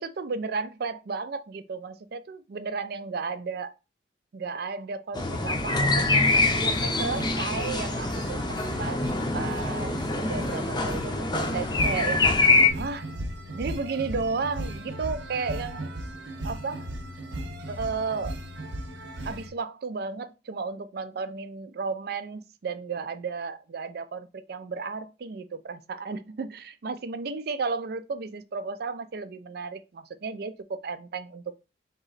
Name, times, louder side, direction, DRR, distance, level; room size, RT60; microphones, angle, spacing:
voice 1, 0.0-3.7 4.3-9.0 9.3-12.3 12.8-13.1 13.5-15.9 16.4-16.9 17.7-18.4 19.2-31.4, right 4 dB, 55° right, 0.4 m, -33 dB
sound 1, 5.1-12.7, left 3 dB, 25° left, 0.6 m, -25 dB
sound 2, 6.1-19.5, right 1 dB, 75° right, 0.8 m, -37 dB
3.9 x 3.0 x 4.0 m
head